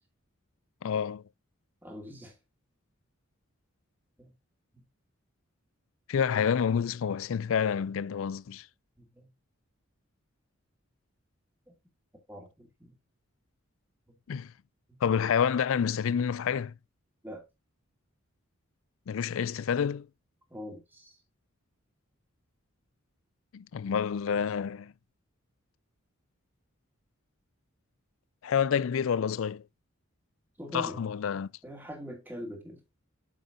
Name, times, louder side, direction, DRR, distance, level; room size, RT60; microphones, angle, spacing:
voice 1, 0.8-1.2 6.1-8.7 14.3-14.5 15.0-16.7 19.1-20.1 23.5-24.9 28.4-29.6 30.7-31.5, left 7 dB, 70° left, 0.4 m, -28 dB
voice 2, 1.8-2.4 4.2-4.4 4.7-4.8 9.0-9.3 11.7-11.8 12.3-12.9 14.9-15.0 17.2-17.5 20.5-21.2 30.6-31.0 31.6-32.8, equal, 10° right, 2.3 m, -43 dB
8.3 x 6.6 x 2.6 m
head